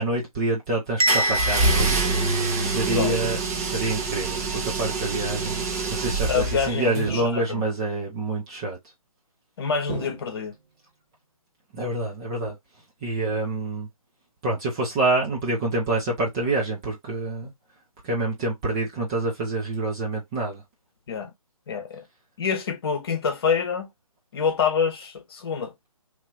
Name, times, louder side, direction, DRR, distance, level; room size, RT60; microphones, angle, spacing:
voice 1, 0.0-5.6 5.9-8.8 11.7-12.6 13.0-13.9 14.4-17.5 18.0-20.6, right 2 dB, 10° right, 0.3 m, -27 dB
Bell, 1.0-3.0, equal, 85° right, 0.7 m, -27 dB
sound 1, 1.1-7.0, right 3 dB, 25° right, 0.8 m, -26 dB
voice 2, 2.9-3.3 6.3-7.6 9.6-10.5 21.1-21.3 21.7-22.0 22.4-23.9 24.3-25.7, left 6 dB, 45° left, 1.0 m, -26 dB
sound 2, 5.5-6.0 7.0-7.8 9.9-10.8, right 5 dB, 60° right, 1.0 m, -38 dB
3.0 x 2.9 x 2.8 m
figure-of-eight pair, 145°, 18 cm